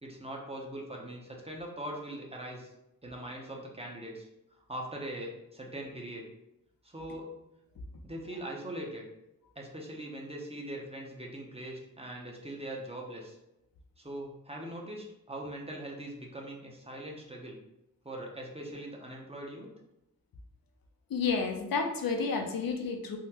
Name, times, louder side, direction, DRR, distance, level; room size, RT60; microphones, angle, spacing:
voice 1, 0.0-2.7 3.0-6.3 6.8-7.3 8.0-9.1 9.6-13.4 14.0-17.6 18.0-19.7, right 1 dB, 20° right, -1 dB, 0.5 m, -41 dB
voice 2, 21.1-23.2, left 5 dB, 85° left, 3 dB, 0.5 m, -30 dB
3.6 x 2.1 x 2.8 m, 0.88 s
wide cardioid pair, 110°, 33 cm